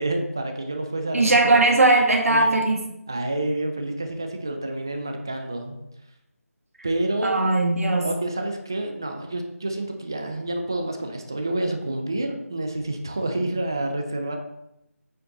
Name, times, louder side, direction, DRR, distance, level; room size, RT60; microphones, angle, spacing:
voice 1, 0.0-1.2 1.5-1.6 2.3-2.6 3.1-5.8 6.8-7.4 8.0-14.4, right 1 dB, 15° right, 5 dB, 0.5 m, -28 dB
voice 2, 1.1-2.8 7.2-8.1, right 2 dB, 65° right, 1 dB, 1.8 m, -19 dB
8.6 x 6.1 x 4.0 m, 0.83 s
figure-of-eight pair, 175°, 8 cm